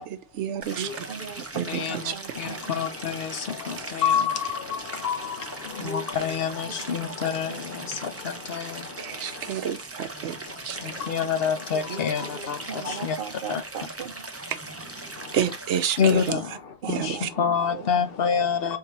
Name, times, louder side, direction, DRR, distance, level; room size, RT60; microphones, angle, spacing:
voice 1, 0.1-0.9 1.4-2.1 3.8-3.9 9.0-10.4 10.6-11.0 14.5-14.6 15.3-16.4 16.8-17.3, right 9 dB, 80° right, 0.9 m, -30 dB
Stream, 0.6-16.3, right 2 dB, 20° right, 0.5 m, -39 dB
voice 2, 0.8-2.7 5.8-7.6 11.8-14.3 16.0-16.4 16.8-17.9, right 4 dB, 55° right, 0.9 m, -38 dB
voice 3, 1.7-8.9 10.8-13.2 13.5-13.6 16.0-16.4 16.9-18.8, left 7 dB, 60° left, 0.9 m, -27 dB
4.7 x 3.5 x 2.9 m
omnidirectional pair, 1.2 m